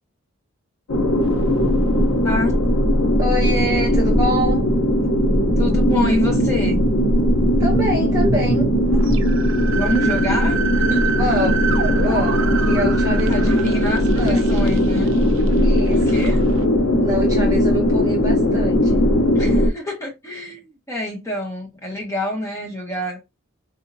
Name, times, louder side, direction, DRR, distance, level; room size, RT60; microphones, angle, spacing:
sound 1, 0.9-19.7, equal, 85° left, 0.8 m, -18 dB
sound 2, 1.2-16.6, right 3 dB, 65° right, 0.5 m, -28 dB
voice 1, 2.2-2.6 5.6-6.8 9.7-11.1 13.3-15.1 15.9-16.4 19.3-23.2, left 1 dB, 15° left, 1.3 m, -27 dB
voice 2, 3.2-4.7 7.6-8.8 11.0-11.7 11.9-13.5 14.2-14.5 15.6-16.0 17.0-19.0, equal, 15° right, 0.9 m, -26 dB
4.1 x 2.7 x 2.6 m
head